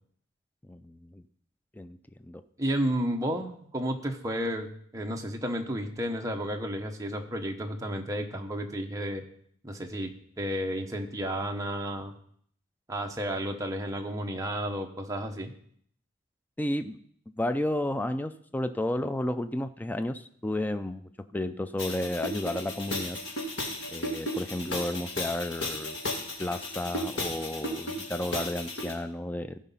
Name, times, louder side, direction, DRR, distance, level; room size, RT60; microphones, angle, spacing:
voice 1, 0.7-1.2 1.7-2.0 2.2-2.4 16.6-17.0 17.4-23.2 23.9-26.0 26.4-29.6, left 1 dB, 10° left, 10 dB, 0.3 m, -32 dB
voice 2, 2.6-4.7 4.9-9.2 9.6-10.1 10.4-12.1 12.9-15.5, equal, 15° right, 2 dB, 1.0 m, -32 dB
sound 1, 21.8-28.9, left 1 dB, 60° left, 2.0 m, -35 dB
15.0 x 5.1 x 5.5 m, 0.63 s
head